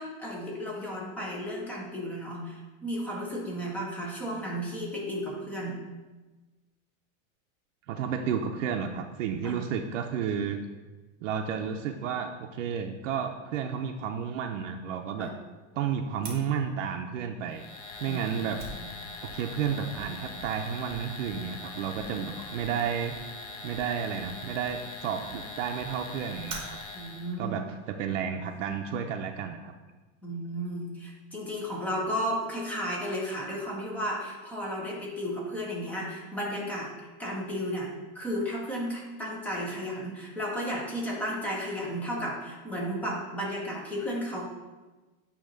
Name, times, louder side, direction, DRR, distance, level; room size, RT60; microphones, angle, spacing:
voice 1, 0.0-5.8 9.4-9.6 15.2-15.3 18.1-18.2 18.8-18.9 26.9-27.6 30.2-36.9 37.2-37.9 38.1-44.5, equal, 5° left, -3 dB, 0.5 m, -33 dB
voice 2, 7.9-10.6 11.2-15.3 15.7-17.6 18.0-18.6 19.2-23.2 23.6-26.8 27.4-29.7, right 7 dB, 70° right, 4 dB, 0.6 m, -32 dB
Fire, 16.2-28.7, right 3 dB, 15° right, 0.9 m, -49 dB
sound 1, 17.5-27.4, left 3 dB, 35° left, 0.7 m, -42 dB
8.7 x 2.9 x 5.2 m, 1.2 s
supercardioid pair, 170°, 40 cm